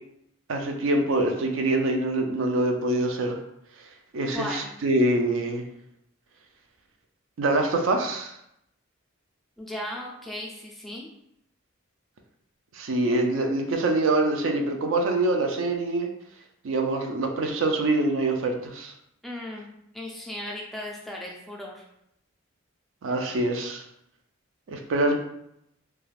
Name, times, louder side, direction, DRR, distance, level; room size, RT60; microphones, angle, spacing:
voice 1, 0.5-3.4 4.1-5.7 7.4-8.3 12.7-16.1 16.6-18.9 23.0-23.8 24.7-25.2, right 2 dB, 70° right, 3 dB, 0.4 m, -25 dB
voice 2, 4.3-4.8 9.6-11.2 19.2-21.8, left 1 dB, ahead, -2 dB, 0.3 m, -36 dB
2.3 x 2.2 x 3.2 m, 0.77 s
head